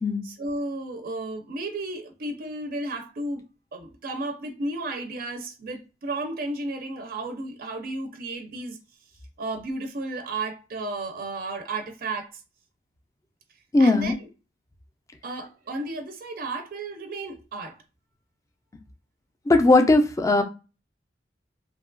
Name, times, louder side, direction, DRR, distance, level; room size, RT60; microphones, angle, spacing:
voice 1, 0.2-3.4 3.7-8.8 9.4-12.4 13.8-14.3 15.2-17.8, right 2 dB, 55° right, 0.4 m, -33 dB
voice 2, 13.7-14.1 19.5-20.4, left 2 dB, 15° left, 0.3 m, -18 dB
2.7 x 2.2 x 2.4 m
head